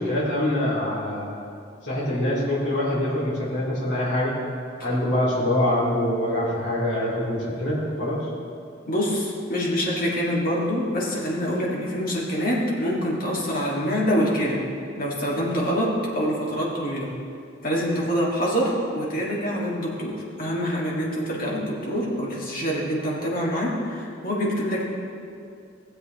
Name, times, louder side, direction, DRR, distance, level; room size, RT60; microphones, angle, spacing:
voice 1, 0.0-1.3 1.8-4.3 4.8-8.2, left 1 dB, 70° left, -8 dB, 2.4 m, -24 dB
voice 2, 8.9-14.6 15.0-17.2 17.6-24.8, equal, 45° left, -4 dB, 1.9 m, -25 dB
16.0 x 7.8 x 3.0 m, 2.5 s
head